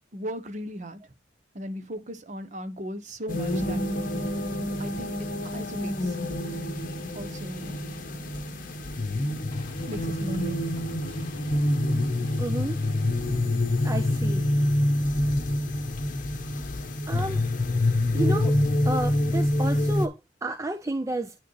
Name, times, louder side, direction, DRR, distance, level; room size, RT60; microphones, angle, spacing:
voice 1, 0.1-1.0 1.5-3.8 4.2-4.3 4.8-6.2 6.4-6.7 7.1-7.8 9.9-10.6, equal, 40° right, 1.0 m, -37 dB
sound 1, 3.3-20.1, left 1 dB, 45° left, 1.1 m, -26 dB
sound 2, 9.5-16.0, left 3 dB, 30° left, 0.8 m, -46 dB
voice 2, 12.4-12.8 13.8-14.5 17.1-17.4 18.1-18.6 18.8-21.3, right 2 dB, 15° right, 0.5 m, -31 dB
9.7 x 4.7 x 3.2 m
head